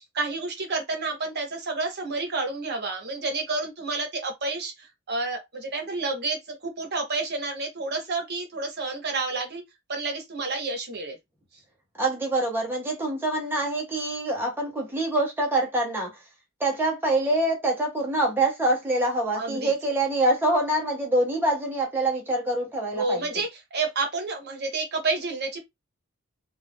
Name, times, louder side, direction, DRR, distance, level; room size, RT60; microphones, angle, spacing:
voice 1, 0.0-9.6 9.9-11.2 19.4-19.7 22.9-25.6, right 3 dB, 50° right, 0.9 m, -30 dB
voice 2, 12.0-16.1 16.6-23.2, right 1 dB, 10° right, 0.8 m, -25 dB
2.6 x 2.3 x 3.5 m
head